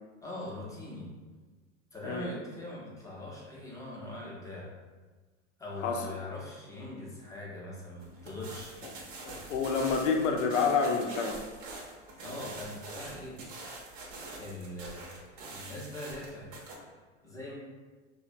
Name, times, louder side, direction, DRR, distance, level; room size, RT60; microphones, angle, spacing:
voice 1, 0.2-1.1 1.9-4.7 5.6-8.8 12.2-13.3 14.4-16.5 17.2-17.5, left 1 dB, 10° left, -5 dB, 0.5 m, -42 dB
voice 2, 5.8-6.1 9.2-11.5, left 5 dB, 85° left, 3 dB, 0.5 m, -28 dB
sound 1, 8.0-16.8, right 2 dB, 50° right, 0.7 m, -45 dB
2.7 x 2.1 x 2.5 m, 1.3 s
hypercardioid pair, 105°, 37 cm